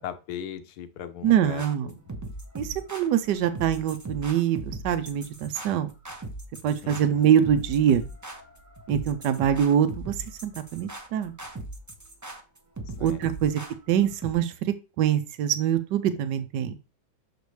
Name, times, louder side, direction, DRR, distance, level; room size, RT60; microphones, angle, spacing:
voice 1, 0.0-2.1 6.8-7.3 13.0-13.2, left 9 dB, 70° left, 10 dB, 1.2 m, -38 dB
voice 2, 1.2-1.9 2.5-5.9 6.6-8.0 8.9-10.1 10.4-11.3 13.0-13.6 13.9-16.7, right 9 dB, 75° right, 10 dB, 1.3 m, -24 dB
sound 1, 1.6-14.3, right 2 dB, 20° right, 0.5 m, -39 dB
6.7 x 5.2 x 3.1 m, 0.30 s
omnidirectional pair, 1.9 m